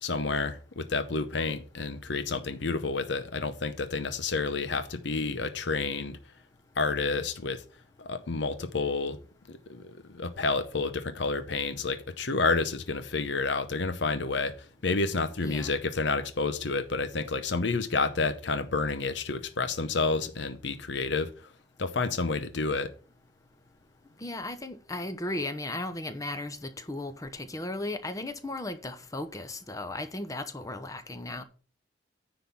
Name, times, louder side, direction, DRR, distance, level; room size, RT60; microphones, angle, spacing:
voice 1, 0.0-6.2 6.8-7.6 8.0-9.2 9.5-14.5 14.8-21.3 21.8-22.9, left 4 dB, 70° left, 0.8 m, -29 dB
voice 2, 15.4-15.8 24.2-31.4, left 2 dB, 20° left, 0.8 m, -36 dB
9.9 x 3.9 x 7.0 m
head